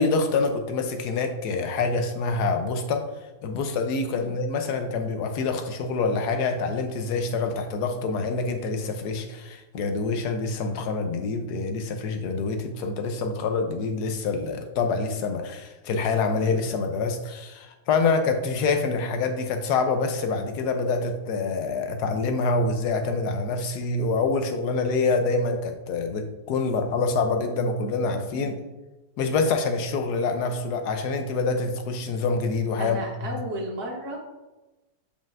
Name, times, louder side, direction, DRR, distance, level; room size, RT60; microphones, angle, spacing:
voice 1, 0.0-3.0 3.4-28.6 29.2-33.3, left 4 dB, 85° left, 6 dB, 1.3 m, -26 dB
voice 2, 32.8-34.2, right 1 dB, 75° right, -1 dB, 1.8 m, -33 dB
7.4 x 5.2 x 2.5 m, 1.1 s
omnidirectional pair, 1.7 m